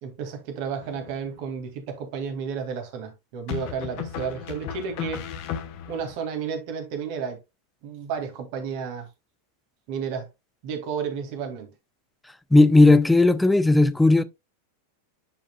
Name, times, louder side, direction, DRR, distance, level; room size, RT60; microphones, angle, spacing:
voice 1, 0.0-5.2 5.9-7.4 7.8-9.1 9.9-10.3 10.6-11.7, right 6 dB, 45° right, 2.1 m, -32 dB
sound 1, 0.8-1.4 3.5-6.1, left 8 dB, 45° left, 1.3 m, -35 dB
voice 2, 12.5-14.2, left 2 dB, 5° left, 0.6 m, -16 dB
10.5 x 5.0 x 2.3 m
figure-of-eight pair, 90°, 0 cm